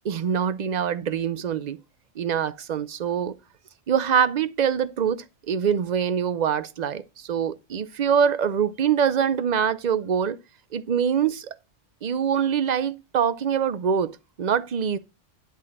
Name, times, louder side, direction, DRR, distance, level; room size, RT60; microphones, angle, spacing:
voice 1, 0.0-1.8 2.2-3.3 3.9-10.4 10.7-11.5 12.0-15.0, right 7 dB, 50° right, 0.5 m, -24 dB
11.0 x 3.9 x 6.4 m
omnidirectional pair, 1.2 m